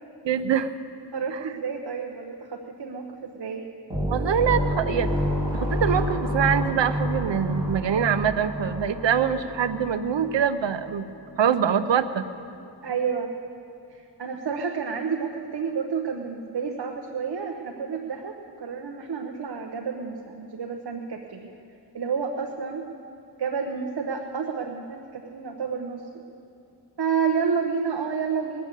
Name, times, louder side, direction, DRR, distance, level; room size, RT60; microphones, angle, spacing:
voice 1, 0.2-0.7 1.3-1.4 4.1-5.1 5.5-11.1 11.4-12.2, right 8 dB, 80° right, 12 dB, 0.8 m, -24 dB
voice 2, 1.1-3.6 12.8-13.3 13.9-21.5 21.9-22.8 23.4-26.2 27.0-28.6, right 6 dB, 60° right, 2 dB, 1.0 m, -30 dB
sound 1, 3.9-10.4, equal, 10° right, 3.8 m, -28 dB
21.0 x 7.0 x 8.3 m, 2.6 s
wide cardioid pair, 75°, 43 cm